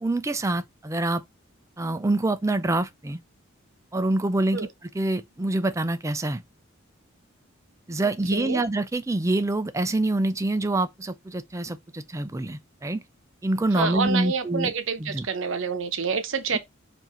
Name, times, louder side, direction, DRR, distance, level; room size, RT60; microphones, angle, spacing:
voice 1, 0.0-1.2 1.8-3.2 3.9-4.7 4.9-6.4 7.9-13.0 13.4-14.7 15.0-15.3, right 2 dB, 15° right, 0.4 m, -26 dB
voice 2, 8.0-8.6 13.7-16.6, right 5 dB, 65° right, 0.7 m, -28 dB
4.6 x 2.7 x 4.3 m
head